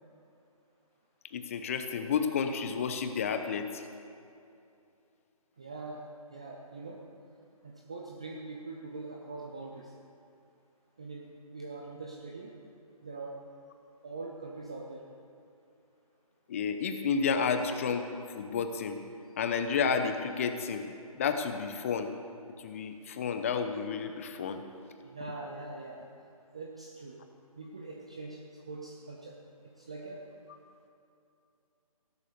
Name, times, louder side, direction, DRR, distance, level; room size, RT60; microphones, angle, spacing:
voice 1, 1.3-3.8 16.5-18.1 18.3-19.0 19.4-20.9 21.1-22.1 22.6-24.6, left 6 dB, 25° left, 7 dB, 0.8 m, -31 dB
voice 2, 5.6-7.0 7.6-10.0 11.0-12.6 13.0-13.4 14.0-15.1 19.3-19.4 25.0-26.1 26.5-27.2 27.6-29.4 29.6-30.3, right 3 dB, 10° right, 0 dB, 0.4 m, -43 dB
16.5 x 11.5 x 6.7 m, 2.7 s
figure-of-eight pair, 160°, 19 cm